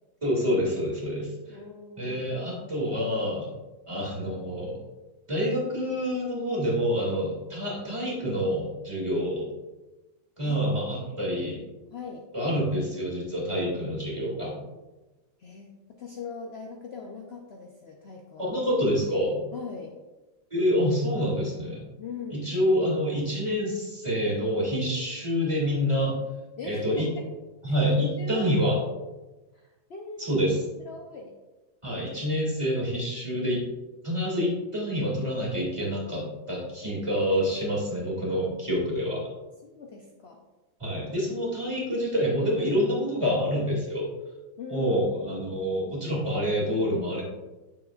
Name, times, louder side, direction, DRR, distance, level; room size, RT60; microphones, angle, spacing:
voice 1, 0.2-1.6 2.0-3.5 3.9-4.8 5.3-9.5 10.4-11.6 12.3-14.6 18.4-19.4 20.5-21.8 22.3-26.1 26.6-27.1 27.6-28.8 30.2-30.6 31.8-33.6 34.0-39.2 40.8-44.0 44.7-47.2, equal, 15° right, -5 dB, 2.3 m, -27 dB
voice 2, 1.5-2.6 10.4-11.0 11.9-12.3 15.4-18.5 19.5-19.9 22.0-22.5 26.6-27.3 27.7-27.8 28.2-28.5 29.5-30.5 30.8-31.3 39.6-40.4 44.6-45.6, left 4 dB, 70° left, 1 dB, 0.6 m, -41 dB
9.2 x 6.9 x 2.4 m, 1.1 s
omnidirectional pair, 2.0 m